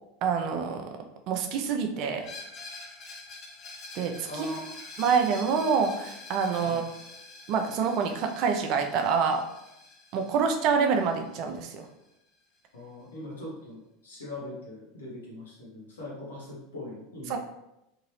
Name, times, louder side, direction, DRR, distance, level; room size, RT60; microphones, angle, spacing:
voice 1, 0.2-2.3 3.9-4.5 5.0-6.8 7.5-9.5 10.1-11.9 17.3-17.4, right 6 dB, 55° right, 5 dB, 0.5 m, -27 dB
Screech, 2.2-11.9, left 3 dB, 45° left, 0.9 m, -46 dB
voice 2, 4.3-4.7 6.6-6.8 12.7-17.4, left 1 dB, 85° left, -5 dB, 1.4 m, -41 dB
3.7 x 2.9 x 3.1 m, 0.87 s
hypercardioid pair, 85°, 0 cm